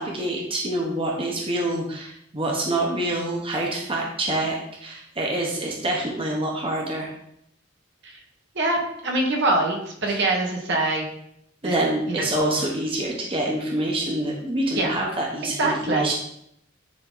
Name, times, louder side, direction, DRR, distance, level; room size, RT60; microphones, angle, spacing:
voice 1, 0.0-7.1 10.1-10.2 11.6-16.2, right 1 dB, 25° right, -1 dB, 1.1 m, -26 dB
voice 2, 8.5-11.1 11.6-11.8 12.1-12.2 14.7-15.0 15.6-16.1, right 2 dB, 60° right, 0 dB, 1.4 m, -24 dB
9.7 x 3.9 x 3.9 m, 0.74 s
head